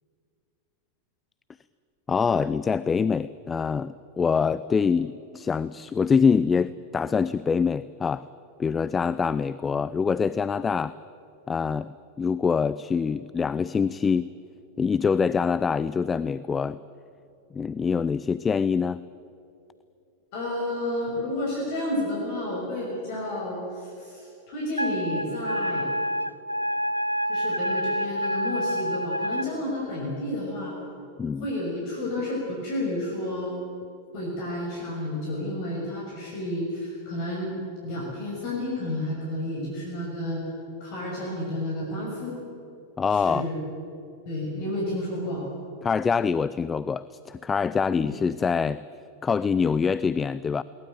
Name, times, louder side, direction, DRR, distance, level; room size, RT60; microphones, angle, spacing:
voice 1, 2.1-8.3 8.6-10.9 11.5-14.3 14.8-16.8 17.5-19.0 31.2-31.5 43.0-43.5 45.8-48.8 49.2-50.6, left 5 dB, 20° left, 17 dB, 0.5 m, -25 dB
voice 2, 20.3-25.9 27.3-30.7 31.4-33.5 34.1-37.5 37.8-40.4 40.8-42.4 43.1-43.6 44.3-45.4 48.0-48.2, left 1 dB, 45° left, -3 dB, 6.0 m, -31 dB
Wind instrument woodwind instrument, 24.8-29.5, equal, 90° left, 0.5 m, -28 dB
22.0 x 19.0 x 9.1 m, 2.7 s
figure-of-eight pair, 90°, 0 cm